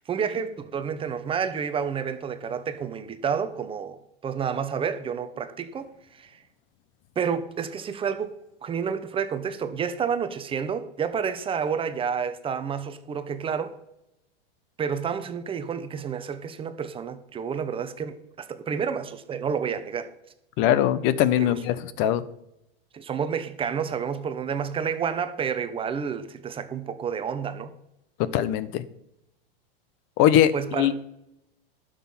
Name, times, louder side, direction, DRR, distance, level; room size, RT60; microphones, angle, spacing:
voice 1, 0.0-6.4 7.2-8.3 8.6-13.8 14.8-20.1 21.4-21.6 22.9-27.7 30.5-31.0, right 7 dB, 20° right, 0.9 m, -30 dB
voice 2, 20.6-22.2 28.2-28.8 30.2-30.9, left 11 dB, 40° left, 1.0 m, -21 dB
12.0 x 6.6 x 5.6 m
supercardioid pair, 140°, 29 cm